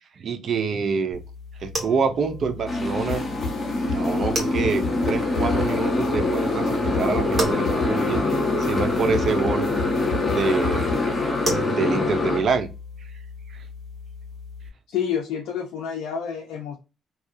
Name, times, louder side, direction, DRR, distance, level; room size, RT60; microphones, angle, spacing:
voice 1, 0.2-1.2 1.6-3.3 3.9-8.3 8.6-9.7 10.3-11.3 11.6-12.7 13.5-13.6, right 5 dB, 55° right, 0.5 m, -26 dB
sound 1, 1.1-14.7, right 1 dB, 40° right, 1.4 m, -35 dB
Motorcycle, 2.7-12.4, left 2 dB, 25° left, 1.0 m, -24 dB
sound 2, 3.1-11.3, left 3 dB, 65° left, 1.2 m, -33 dB
voice 2, 14.9-16.8, left 8 dB, 85° left, 0.5 m, -28 dB
2.7 x 2.3 x 2.5 m
cardioid pair, 90°, 0 cm